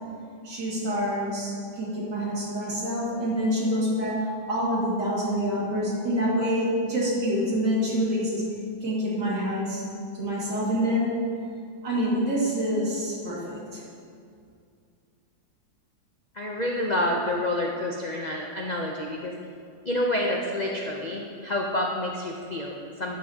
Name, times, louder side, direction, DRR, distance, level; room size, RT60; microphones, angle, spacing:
voice 1, 0.4-8.4 8.8-9.8 10.1-11.2 11.8-13.8, equal, 70° right, -6 dB, 2.9 m, -26 dB
voice 2, 16.3-19.3 19.8-23.1, left 1 dB, 60° left, -1 dB, 0.4 m, -28 dB
12.0 x 9.3 x 2.9 m, 2.3 s
omnidirectional pair, 1.9 m